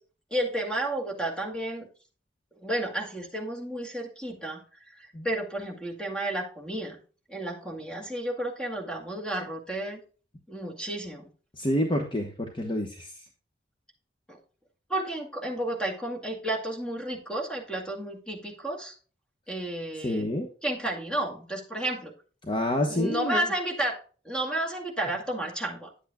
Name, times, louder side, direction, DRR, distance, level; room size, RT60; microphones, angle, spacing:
voice 1, 0.3-1.9 2.6-4.6 4.9-7.0 7.3-10.0 10.5-11.3 14.3-14.4 14.9-18.9 19.5-20.2 20.6-22.1 22.9-24.0 24.2-25.9, right 1 dB, 5° left, 1 dB, 2.1 m, -32 dB
voice 2, 11.6-13.1 20.0-20.5 22.5-23.4, left 1 dB, 30° left, 3 dB, 1.0 m, -28 dB
10.0 x 8.2 x 2.3 m, 0.38 s
head